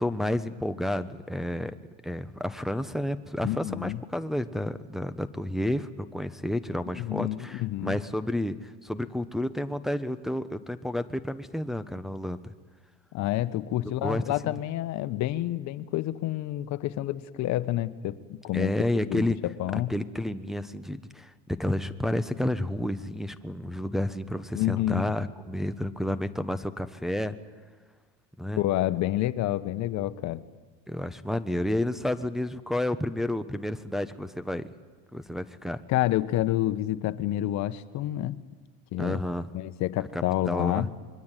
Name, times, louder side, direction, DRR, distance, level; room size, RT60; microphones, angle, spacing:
voice 1, 0.0-1.7 2.0-12.5 14.0-14.5 18.5-19.4 19.7-27.3 28.4-28.6 30.9-34.7 35.1-35.8 39.0-39.5 40.1-40.9, left 1 dB, ahead, 8 dB, 1.0 m, -30 dB
voice 2, 3.4-4.0 6.9-8.0 13.1-18.7 19.0-20.0 24.5-25.1 28.6-30.4 35.9-38.4 38.9-39.2 39.5-40.9, left 14 dB, 50° left, 13 dB, 1.3 m, -29 dB
26.0 x 22.0 x 9.2 m, 1.4 s
supercardioid pair, 115°, 36 cm